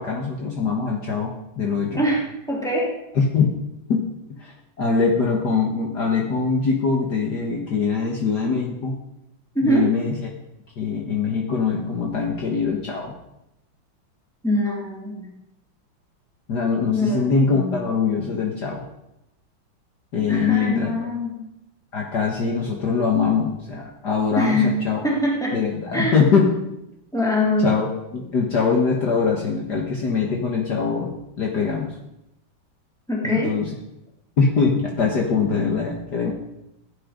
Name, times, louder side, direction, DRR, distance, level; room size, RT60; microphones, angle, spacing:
voice 1, 0.0-2.0 3.2-3.5 3.9-4.0 4.4-8.9 9.6-10.1 10.8-13.2 16.5-18.8 20.1-20.9 21.9-25.0 25.5-26.5 27.6-27.9 28.1-31.9 33.2-33.7 34.4-36.3, left 5 dB, 55° left, 0 dB, 2.0 m, -22 dB
voice 2, 1.9-3.0 9.5-9.9 14.4-15.3 16.9-17.8 20.3-21.4 24.4-24.8 25.0-25.6 25.9-26.2 27.1-27.7 33.1-33.6, left 1 dB, ahead, -4 dB, 3.5 m, -23 dB
16.5 x 9.2 x 5.3 m, 0.86 s
omnidirectional pair, 2.3 m